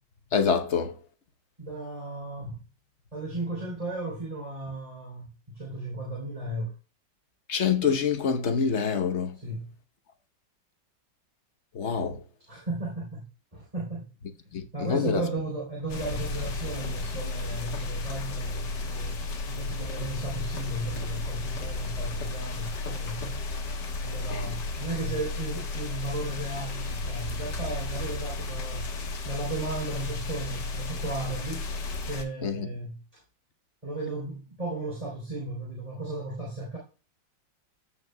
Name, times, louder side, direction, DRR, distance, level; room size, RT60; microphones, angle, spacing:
voice 1, 0.3-0.9 7.5-9.3 11.7-12.2 14.5-15.2 24.3-24.5 32.4-32.7, left 6 dB, 50° left, 0.9 m, -26 dB
voice 2, 1.6-2.5 3.1-6.7 9.3-9.7 12.5-14.1 14.7-19.2 19.5-23.4 24.0-28.9 29.3-31.6 32.0-33.2 33.8-36.8, right 2 dB, 20° right, 3.3 m, -35 dB
sound 1, 15.9-32.2, left 3 dB, 65° left, 1.9 m, -33 dB
15.5 x 5.7 x 2.2 m
omnidirectional pair, 2.1 m